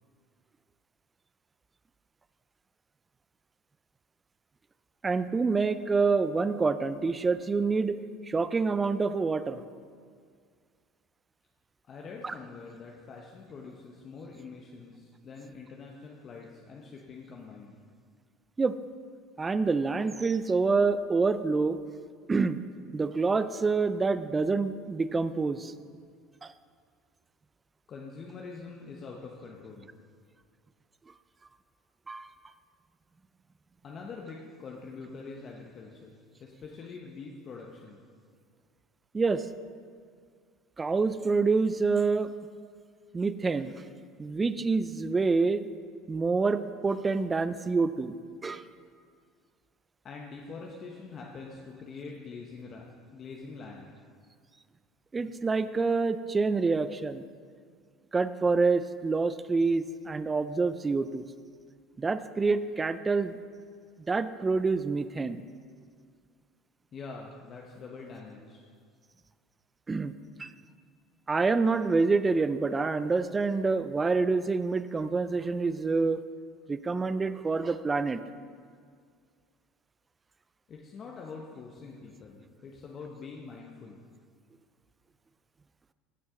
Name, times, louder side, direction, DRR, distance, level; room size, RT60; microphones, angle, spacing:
voice 1, 5.0-8.0 8.3-9.6 12.2-12.3 18.6-18.8 19.4-21.8 22.3-22.6 22.9-25.7 26.4-26.5 32.1-32.3 39.1-39.4 40.8-42.3 43.1-43.7 44.2-45.7 46.1-48.2 48.4-48.6 55.1-57.2 58.1-61.2 62.0-63.4 64.1-65.4 69.9-70.1 70.4-70.5 71.3-76.2 76.7-78.2, right 4 dB, 20° right, 13 dB, 0.4 m, -27 dB
voice 2, 11.9-17.7 27.9-29.9 33.8-36.1 36.4-38.0 50.0-52.9 53.1-53.9 66.9-68.6 80.7-84.0, left 4 dB, 40° left, -1 dB, 0.9 m, -44 dB
15.0 x 6.3 x 3.7 m, 2.1 s
supercardioid pair, 95°, 0 cm